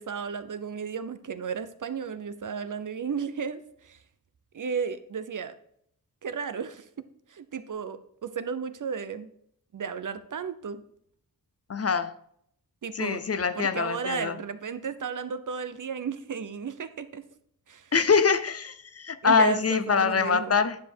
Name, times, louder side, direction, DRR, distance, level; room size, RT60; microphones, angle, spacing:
voice 1, 0.0-4.0 4.5-5.5 6.2-9.3 9.7-10.8 12.8-13.2 13.6-17.3 17.7-17.9 19.2-20.6, right 6 dB, 55° right, 0.8 m, -34 dB
voice 2, 11.7-12.1 12.9-14.4 17.9-20.8, left 5 dB, 40° left, 0.6 m, -24 dB
10.5 x 5.1 x 4.5 m
cardioid pair, 65°, 37 cm